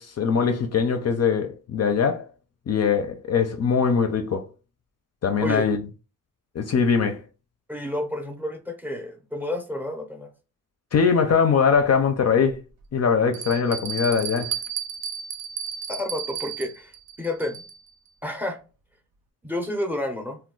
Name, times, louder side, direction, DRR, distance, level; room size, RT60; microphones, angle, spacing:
voice 1, 0.0-2.3 2.7-4.5 5.2-5.8 6.5-7.2 10.9-12.6 12.9-14.5, left 6 dB, 45° left, 0.5 m, -22 dB
voice 2, 5.4-5.7 7.7-10.3 15.9-16.9 17.2-17.6 18.2-18.6 19.4-20.4, left 1 dB, 5° right, 0.6 m, -30 dB
Bell, 11.7-11.8 12.5-12.6 13.3-17.9, right 8 dB, 70° right, 0.5 m, -33 dB
2.2 x 2.2 x 3.7 m
cardioid pair, 65°, 36 cm